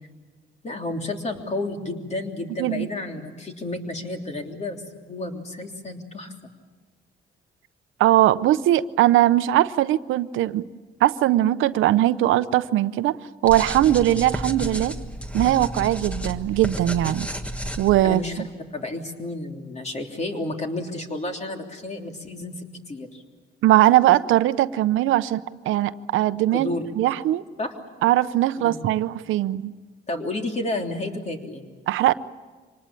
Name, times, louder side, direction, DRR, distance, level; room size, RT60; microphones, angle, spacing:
voice 1, 0.6-6.3 18.0-18.4 18.7-23.2 26.5-26.8 27.6-27.7 28.7-28.8 30.1-31.6, left 2 dB, 35° left, 3 dB, 3.3 m, -31 dB
voice 2, 8.0-10.7 11.0-15.0 15.3-17.3 17.8-18.2 23.6-26.7 27.0-27.4 28.0-29.7 31.9-32.1, right 14 dB, 85° right, 14 dB, 0.7 m, -20 dB
sound 1, 13.4-18.3, equal, 5° left, 1.4 m, -32 dB
25.0 x 19.5 x 8.9 m, 1.3 s
cardioid pair, 90°, 20 cm